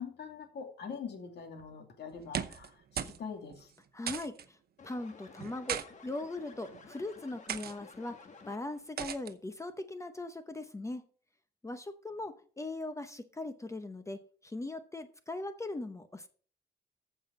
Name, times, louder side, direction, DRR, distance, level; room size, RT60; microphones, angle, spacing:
voice 1, 0.0-3.7, left 6 dB, 85° left, 2.5 m, -43 dB
sound 1, 2.2-2.7 3.0-3.2 3.5-3.6 4.1-4.5 5.4-5.9 6.6-6.9 7.5-7.7 9.0-9.3, right 9 dB, 70° right, 0.8 m, -37 dB
voice 2, 3.9-4.6 4.8-11.0 11.6-16.3, left 2 dB, 15° left, 0.8 m, -40 dB
sound 2, 4.8-8.9, left 4 dB, 45° left, 1.7 m, -53 dB
14.5 x 5.5 x 5.2 m
wide cardioid pair, 145°, 17 cm